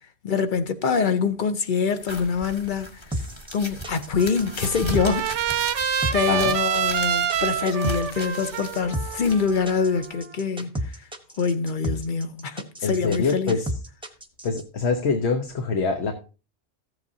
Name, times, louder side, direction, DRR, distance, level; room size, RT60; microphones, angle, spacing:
voice 1, 0.2-2.9 3.5-5.6 6.1-11.0 11.4-13.6, left 5 dB, 50° left, 0.8 m, -25 dB
sound 1, 2.0-10.1, equal, 25° left, 1.5 m, -39 dB
sound 2, 3.1-14.6, equal, 5° right, 0.9 m, -32 dB
Trumpet, 4.2-10.4, right 9 dB, 80° right, 0.9 m, -27 dB
voice 2, 12.8-13.6 14.4-16.1, left 4 dB, 70° left, 1.2 m, -24 dB
14.5 x 8.0 x 2.7 m
omnidirectional pair, 1.2 m